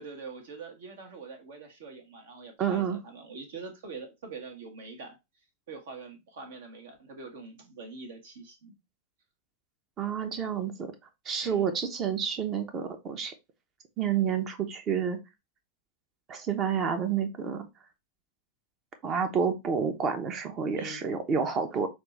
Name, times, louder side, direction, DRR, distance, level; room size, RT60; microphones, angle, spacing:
voice 1, 0.0-5.2 5.7-8.7 11.4-11.6 20.7-21.0, right 4 dB, 55° right, 1.3 m, -44 dB
voice 2, 2.6-3.0 10.0-10.9 11.2-13.3 14.0-15.2 16.3-17.7 19.0-21.9, right 7 dB, 30° right, 0.9 m, -29 dB
5.7 x 2.6 x 3.2 m
figure-of-eight pair, 90°, 0 cm